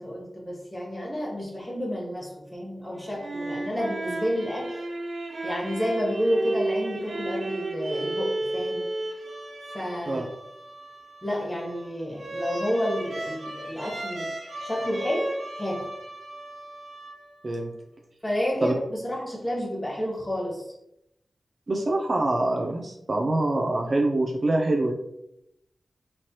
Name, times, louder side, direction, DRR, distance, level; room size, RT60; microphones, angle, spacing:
voice 1, 0.0-4.8 5.4-8.8 9.7-10.2 11.2-14.3 14.6-15.9 18.2-20.7, equal, 15° left, -2 dB, 1.4 m, -30 dB
sound 1, 2.9-17.6, right 2 dB, 75° right, 1.1 m, -34 dB
voice 2, 21.7-24.9, right 2 dB, 45° right, 1 dB, 0.5 m, -25 dB
4.3 x 3.1 x 2.9 m, 0.81 s
wide cardioid pair, 95°, 0 cm